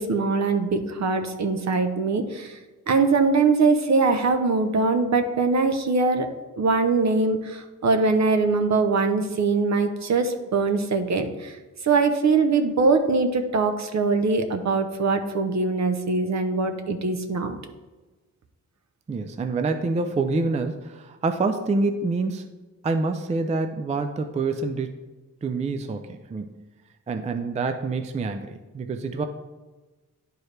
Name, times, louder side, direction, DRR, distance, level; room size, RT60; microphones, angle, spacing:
voice 1, 0.0-2.5 2.9-6.3 6.6-11.5 11.8-17.6, right 4 dB, 60° right, 7 dB, 0.7 m, -22 dB
voice 2, 19.1-22.4 22.8-24.9 25.4-26.6 27.1-29.3, right 3 dB, 25° right, 7 dB, 0.3 m, -26 dB
10.5 x 4.6 x 3.2 m, 1.2 s
wide cardioid pair, 160°, 32 cm